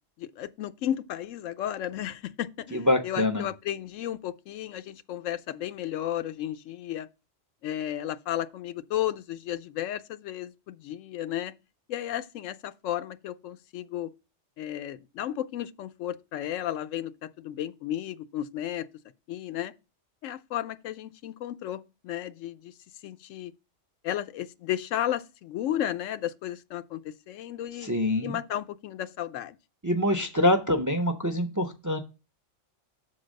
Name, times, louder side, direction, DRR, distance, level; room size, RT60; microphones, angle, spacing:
voice 1, 0.2-7.1 7.6-11.5 11.9-14.1 14.6-18.9 19.3-19.7 20.2-22.7 23.0-23.5 24.0-27.9 28.2-29.6, left 11 dB, 85° left, 0.9 m, -33 dB
voice 2, 2.7-3.4 27.8-28.4 29.8-32.0, left 1 dB, 25° right, 0.5 m, -25 dB
7.1 x 3.9 x 6.3 m
omnidirectional pair, 1.3 m